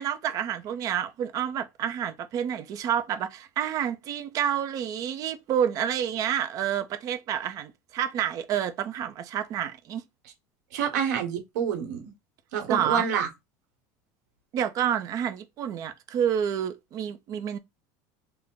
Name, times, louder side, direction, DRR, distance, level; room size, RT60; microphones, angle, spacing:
voice 1, 0.0-10.0 12.7-13.0 14.5-17.6, right 9 dB, 40° right, 0.5 m, -29 dB
voice 2, 10.7-12.1 12.5-13.3, right 7 dB, 85° right, 1.2 m, -27 dB
3.4 x 2.1 x 3.7 m
supercardioid pair, 145°, 9 cm